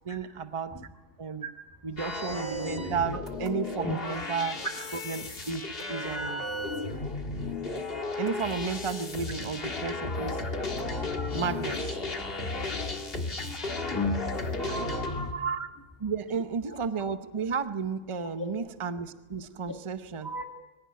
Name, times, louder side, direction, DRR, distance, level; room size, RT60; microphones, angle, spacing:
voice 1, 0.0-0.8 1.2-1.5 1.8-4.6 4.9-6.4 8.2-10.4 11.3-12.0 14.7-14.8 15.3-15.7 16.0-20.3, right 5 dB, 30° right, 10 dB, 0.8 m, -33 dB
sound 1, 2.0-15.3, left 2 dB, 50° left, 2.0 m, -34 dB
voice 2, 13.9-14.3 14.6-15.4 20.2-20.4, left 2 dB, 15° left, 2 dB, 1.5 m, -33 dB
22.5 x 16.5 x 9.4 m, 1.2 s
omnidirectional pair, 1.3 m